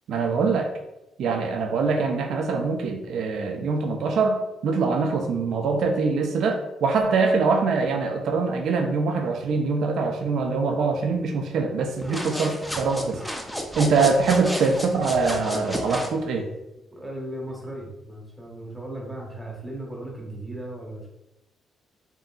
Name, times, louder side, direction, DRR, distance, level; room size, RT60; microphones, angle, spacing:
voice 1, 0.1-0.7 1.2-13.2 13.7-16.5, right 4 dB, 70° right, 4 dB, 0.4 m, -23 dB
sound 1, 12.0-16.2, equal, 5° left, 0.4 m, -32 dB
voice 2, 16.9-21.1, right 1 dB, 10° right, -2 dB, 0.9 m, -36 dB
2.7 x 2.4 x 2.3 m, 0.93 s
cardioid pair, 90°, 0 cm